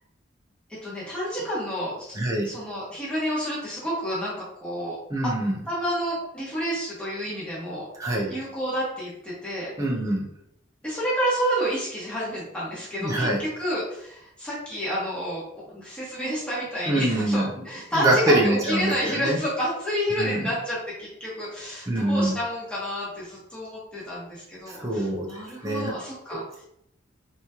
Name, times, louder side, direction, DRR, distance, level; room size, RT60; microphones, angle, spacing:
voice 1, 0.8-2.1 2.4-5.0 5.2-5.3 5.7-7.9 8.3-9.7 10.8-26.4, equal, 5° left, -8 dB, 1.2 m, -29 dB
voice 2, 2.2-2.5 5.1-5.5 8.0-8.3 9.8-10.3 13.0-13.4 16.9-17.5 17.9-19.4 20.2-20.5 21.9-22.3 24.7-25.9 26.3-26.6, right 1 dB, 15° right, -3 dB, 0.5 m, -24 dB
3.5 x 3.0 x 2.8 m, 0.75 s
head